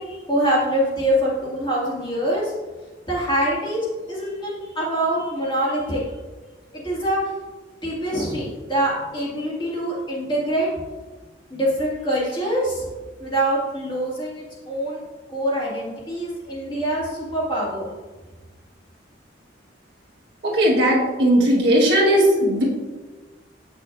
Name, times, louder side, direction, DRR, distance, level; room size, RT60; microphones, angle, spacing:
voice 1, 0.0-2.5 3.1-3.8 4.1-6.1 6.7-7.2 7.8-10.7 11.5-12.9 13.2-15.0 15.3-17.9, right 1 dB, 25° left, -6 dB, 2.1 m, -24 dB
voice 2, 20.4-22.6, right 1 dB, 60° right, -3 dB, 1.4 m, -17 dB
8.2 x 6.4 x 2.5 m, 1.3 s
head